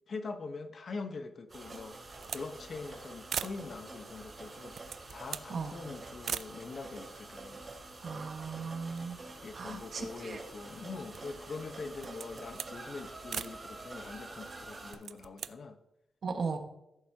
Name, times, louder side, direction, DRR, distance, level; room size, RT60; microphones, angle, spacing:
voice 1, 0.1-2.0 2.3-4.8 5.1-7.6 8.0-8.3 9.4-15.8, left 4 dB, 50° left, 8 dB, 1.1 m, -43 dB
sound 1, 1.5-14.9, right 2 dB, 35° right, 2.8 m, -47 dB
sound 2, 1.7-2.5 2.8-2.9 3.3-3.6 4.5-5.5 6.2-6.5 7.3-7.4 7.6-8.5 8.8-10.1 10.6-11.4 11.9-12.8 13.3-13.6 14.8-15.5, right 8 dB, 75° right, 0.4 m, -41 dB
voice 2, 8.0-9.2 9.5-10.4 16.2-16.6, right 5 dB, 55° right, 5 dB, 1.5 m, -37 dB
14.5 x 8.1 x 2.9 m, 0.85 s
cardioid pair, 105°, 0 cm